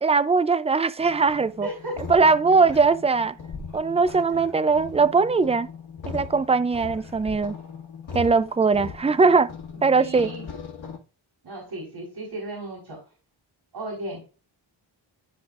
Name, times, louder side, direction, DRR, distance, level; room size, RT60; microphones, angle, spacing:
voice 1, 0.0-1.7 2.1-3.4 3.7-5.7 6.1-7.6 8.1-9.5 9.8-10.3, right 4 dB, 15° right, 0.4 m, -20 dB
sound 1, 1.0-11.0, left 5 dB, 85° left, 2.3 m, -39 dB
voice 2, 1.6-2.0 9.9-10.5 11.4-13.0 13.7-14.2, right 1 dB, 60° right, 4.3 m, -34 dB
14.0 x 5.1 x 2.5 m
wide cardioid pair, 125°, 46 cm